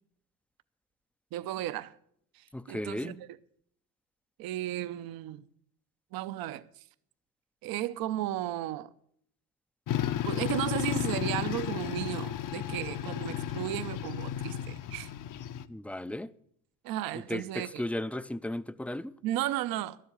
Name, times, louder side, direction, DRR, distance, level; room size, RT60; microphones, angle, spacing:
voice 1, 1.3-1.9 2.4-3.3 4.4-5.4 6.1-6.7 7.6-8.9 10.2-15.1 16.8-17.8 19.2-20.0, right 13 dB, 60° right, 0.8 m, -34 dB
voice 2, 2.5-3.2 15.7-16.3 17.3-19.1, left 1 dB, 5° left, 0.4 m, -35 dB
sound 1, 9.9-15.7, left 11 dB, 50° left, 0.8 m, -33 dB
12.0 x 7.7 x 8.5 m
hypercardioid pair, 75°, 41 cm